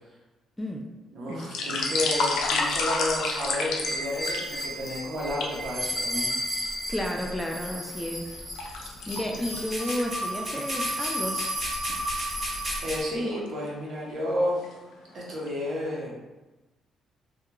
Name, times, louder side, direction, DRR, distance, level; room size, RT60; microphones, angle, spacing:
voice 1, 0.6-0.9 1.3-1.5 6.9-8.3 9.1-11.4, equal, 10° left, 1 dB, 0.3 m, -32 dB
voice 2, 1.1-6.3 12.8-14.6 15.1-16.1, left 1 dB, 60° right, -5 dB, 0.8 m, -31 dB
sound 1, 1.3-4.9 5.4-5.6 6.3-7.1 7.6-10.4 10.8-10.9 11.3-11.5 11.9-12.1 13.0-13.5 14.0-14.2 14.5-15.1 15.5-15.6, left 4 dB, 90° left, 0.4 m, -30 dB
sound 2, 1.8-13.0, equal, 20° right, 1.0 m, -33 dB
2.3 x 2.2 x 2.9 m, 1.1 s
cardioid pair, 90°, 0 cm